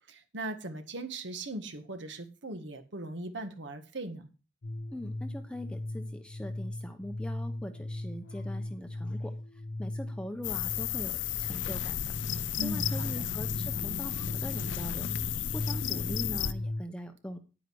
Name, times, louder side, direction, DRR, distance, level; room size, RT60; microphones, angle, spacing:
voice 1, 0.1-4.3 12.6-13.3, right 1 dB, 65° right, 8 dB, 1.6 m, -39 dB
sound 1, 4.6-16.8, left 1 dB, 90° left, 0.9 m, -38 dB
voice 2, 4.9-9.3 9.8-12.1 12.6-15.1 15.5-17.4, equal, 5° left, 6 dB, 0.8 m, -42 dB
sound 2, 10.4-16.5, left 10 dB, 70° left, 0.6 m, -33 dB
9.9 x 9.4 x 4.7 m, 0.33 s
head